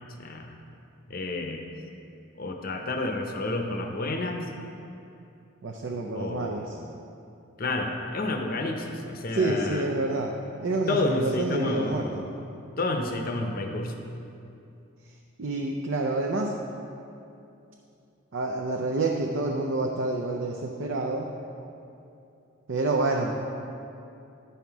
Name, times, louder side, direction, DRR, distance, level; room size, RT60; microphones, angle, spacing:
voice 1, 0.2-0.5 1.1-1.6 2.4-4.5 6.1-6.7 7.6-9.8 10.9-12.2 12.8-13.9, left 2 dB, 45° left, 4 dB, 0.7 m, -30 dB
voice 2, 5.6-6.8 9.3-10.3 10.6-12.2 15.4-16.5 18.3-21.3 22.7-23.3, right 2 dB, 60° right, 0 dB, 0.5 m, -28 dB
10.5 x 5.7 x 4.6 m, 2.7 s
head